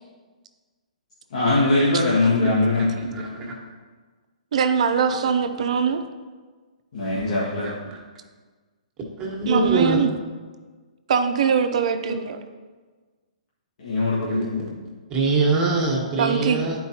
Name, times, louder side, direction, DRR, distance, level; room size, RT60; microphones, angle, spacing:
voice 1, 1.3-2.9 6.9-7.8 13.8-14.7, left 2 dB, 60° left, -7 dB, 1.6 m, -21 dB
voice 2, 2.1-2.5 2.8-3.6 5.1-5.2 7.3-8.0 9.2-10.0 12.1-12.2 14.2-14.7 15.1-16.8, right 2 dB, 25° right, -1 dB, 1.3 m, -25 dB
voice 3, 4.5-6.0 9.5-10.1 11.1-12.4 16.2-16.6, right 7 dB, 60° right, 8 dB, 0.6 m, -22 dB
10.0 x 4.6 x 2.9 m, 1.4 s
hypercardioid pair, 135°, 4 cm